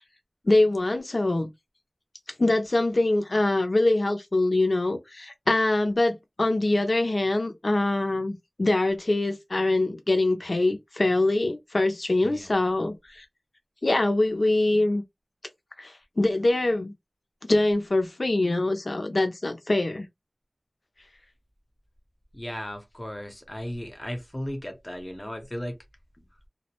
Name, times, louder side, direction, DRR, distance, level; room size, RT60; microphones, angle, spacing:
voice 1, 0.4-1.5 2.4-13.2 13.8-15.0 15.8-16.9 17.5-20.1, left 2 dB, 70° left, 0.5 m, -24 dB
voice 2, 12.2-12.6 22.3-25.8, equal, 25° left, 0.8 m, -36 dB
2.2 x 2.0 x 2.9 m
wide cardioid pair, 45°, 0 cm